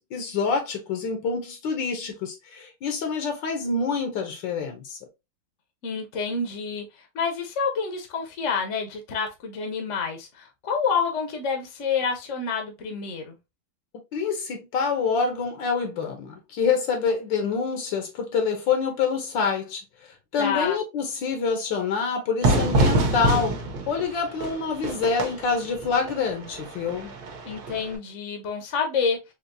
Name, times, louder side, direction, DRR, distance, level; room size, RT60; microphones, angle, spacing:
voice 1, 0.0-5.0 14.1-19.8 20.3-23.6 23.9-27.1, left 5 dB, 75° left, 1.5 m, -26 dB
voice 2, 5.8-6.8 7.1-13.3 20.4-20.8 27.4-29.2, left 5 dB, 50° left, 0.9 m, -28 dB
Fire / Fireworks, 22.4-28.0, right 2 dB, 60° right, 1.3 m, -26 dB
4.4 x 2.9 x 2.5 m
omnidirectional pair, 2.0 m